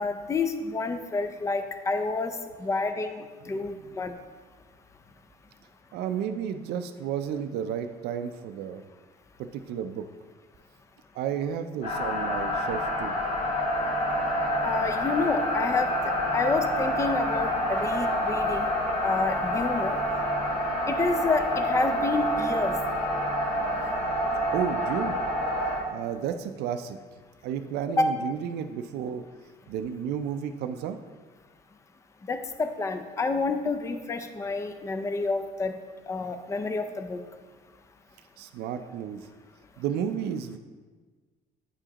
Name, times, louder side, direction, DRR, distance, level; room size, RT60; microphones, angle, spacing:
voice 1, 0.0-2.3 2.6-4.1 14.6-15.9 16.3-18.7 19.0-20.0 20.9-22.7 28.0-28.1 32.3-35.7 36.1-37.2, left 3 dB, 15° left, 8 dB, 0.4 m, -28 dB
voice 2, 5.9-8.8 9.4-10.1 11.1-13.1 24.5-25.2 25.9-27.0 27.4-29.2 29.7-31.0 38.4-39.3 39.8-40.6, right 8 dB, 75° right, 8 dB, 0.4 m, -32 dB
sound 1, 11.8-25.8, equal, 75° left, 1.9 m, -27 dB
8.6 x 4.9 x 2.9 m, 1.4 s
cardioid pair, 110°, 17 cm